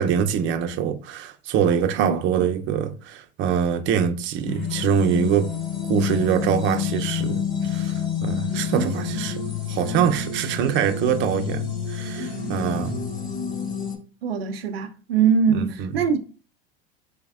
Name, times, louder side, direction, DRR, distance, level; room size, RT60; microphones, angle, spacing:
voice 1, 0.0-5.5 5.9-9.4 9.7-13.0 15.5-15.9, right 8 dB, 40° right, 0.6 m, -24 dB
sound 1, 4.5-14.0, left 7 dB, 30° left, 1.6 m, -28 dB
voice 2, 14.2-16.2, right 6 dB, 85° right, 0.6 m, -22 dB
4.3 x 3.2 x 2.4 m
hypercardioid pair, 85°, 29 cm